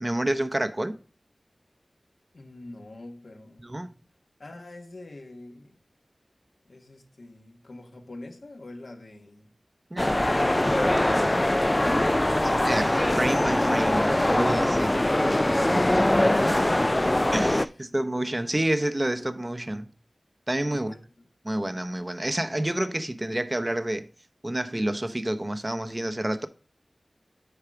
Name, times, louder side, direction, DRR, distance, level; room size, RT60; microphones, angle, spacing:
voice 1, 0.0-0.9 3.6-3.9 9.9-10.2 12.6-14.9 16.6-16.7 17.3-19.9 20.5-20.9 21.4-24.1 24.4-26.5, right 1 dB, 30° right, 0.7 m, -28 dB
voice 2, 2.3-3.6 4.4-5.8 6.6-9.5 17.7-17.8 20.7-21.3, left 2 dB, 80° left, 1.3 m, -44 dB
sound 1, 10.0-17.7, left 1 dB, 25° left, 0.3 m, -22 dB
6.8 x 4.8 x 5.8 m
wide cardioid pair, 50°, 0 cm